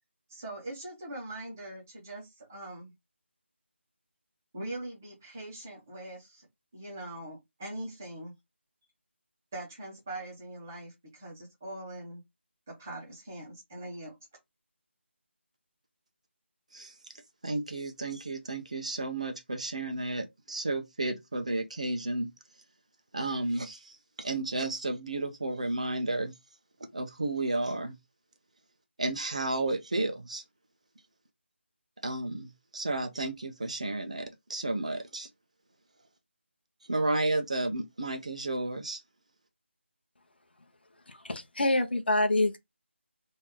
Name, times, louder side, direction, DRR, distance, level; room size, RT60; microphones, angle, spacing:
voice 1, 0.3-2.9 4.5-6.5 6.7-8.3 9.5-12.2 12.7-14.2, right 1 dB, 10° right, 0.9 m, -42 dB
voice 2, 17.4-22.3 23.1-26.3 26.9-28.0 29.0-30.4 32.0-35.3 36.8-39.0, right 2 dB, 30° right, 0.5 m, -32 dB
voice 3, 41.1-42.6, left 2 dB, 55° left, 0.8 m, -26 dB
3.0 x 2.6 x 3.5 m
figure-of-eight pair, 180°, 7 cm